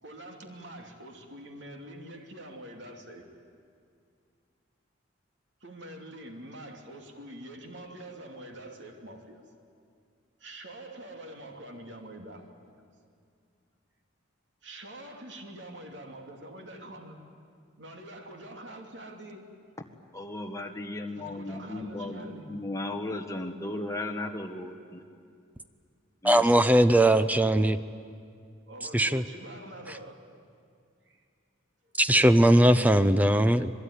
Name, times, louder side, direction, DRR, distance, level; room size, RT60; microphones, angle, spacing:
voice 1, 0.0-3.3 5.6-9.4 10.4-12.6 14.6-17.2 17.8-19.4 21.1-22.5 27.1-27.4 28.7-30.2 31.0-31.2, right 1 dB, 65° right, 3 dB, 2.8 m, -45 dB
voice 2, 20.1-25.0 26.2-26.5, left 2 dB, 15° left, 3 dB, 1.6 m, -36 dB
voice 3, 26.2-27.8 28.9-29.2 29.9-30.0 32.0-33.7, right 1 dB, 10° right, 12 dB, 0.6 m, -20 dB
26.5 x 21.0 x 9.9 m, 2.3 s
head